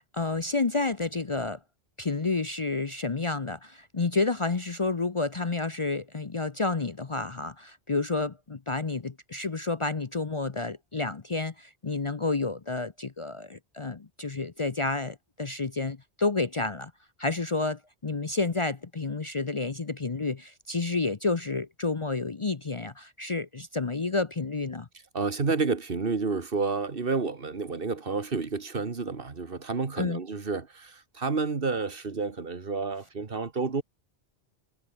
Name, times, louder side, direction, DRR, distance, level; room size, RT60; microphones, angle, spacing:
voice 1, 0.0-1.6 2.0-16.9 17.2-24.9 30.0-30.2, left 3 dB, 30° left, 0.8 m, -30 dB
voice 2, 25.1-33.8, right 4 dB, 55° right, 1.8 m, -30 dB
omnidirectional pair, 1.1 m